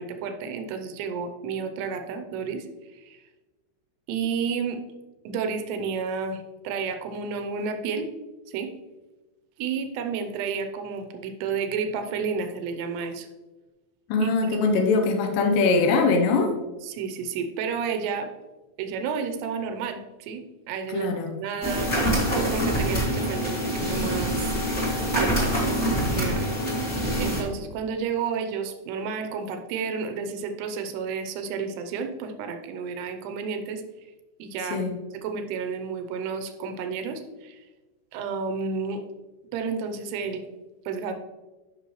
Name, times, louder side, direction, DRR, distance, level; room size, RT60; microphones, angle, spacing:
voice 1, 0.0-2.7 2.9-3.2 4.1-4.8 5.2-8.1 8.5-8.7 9.6-13.3 14.2-14.6 16.8-18.3 18.8-21.9 22.3-24.5 25.1-25.6 26.1-26.5 27.2-33.8 34.4-34.9 35.2-37.6 38.1-39.0 39.5-40.5 40.9-41.1, right 5 dB, 80° right, 6 dB, 2.5 m, -31 dB
voice 2, 14.1-16.5 20.9-21.3 34.7-34.9, left 3 dB, 90° left, 3 dB, 1.9 m, -22 dB
sound 1, 21.6-27.4, equal, 20° left, 1.9 m, -25 dB
12.5 x 6.1 x 3.1 m, 1.2 s
omnidirectional pair, 5.3 m